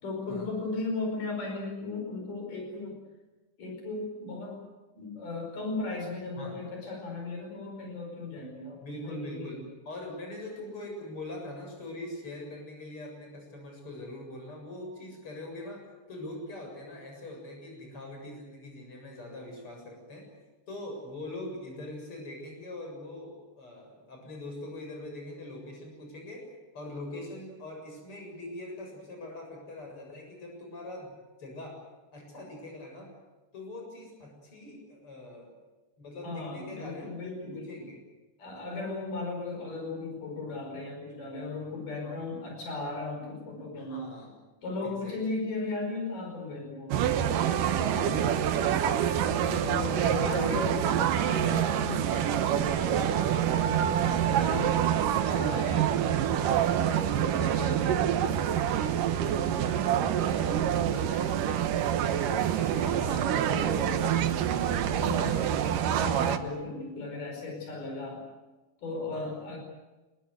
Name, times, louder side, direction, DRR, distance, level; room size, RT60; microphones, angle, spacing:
voice 1, 0.0-3.0 3.6-4.6 4.9-9.6 36.2-37.7 38.4-44.1 44.6-48.6 49.4-53.9 54.4-54.8 55.3-55.7 64.8-68.2 68.8-69.6, left 3 dB, 85° left, 1 dB, 6.7 m, -36 dB
voice 2, 8.8-20.3 20.7-26.5 26.7-31.9 32.1-33.1 33.5-35.5 36.0-38.0 42.0-42.2 43.8-44.4 44.8-45.4 47.4-48.0 48.6-49.5 49.9-50.9 54.2-54.7 55.3-66.2 69.1-69.3, left 1 dB, 40° left, 2 dB, 8.2 m, -42 dB
sound 1, 46.9-66.4, right 10 dB, 90° right, 2.8 m, -26 dB
27.0 x 21.0 x 8.1 m, 1.2 s
omnidirectional pair, 3.7 m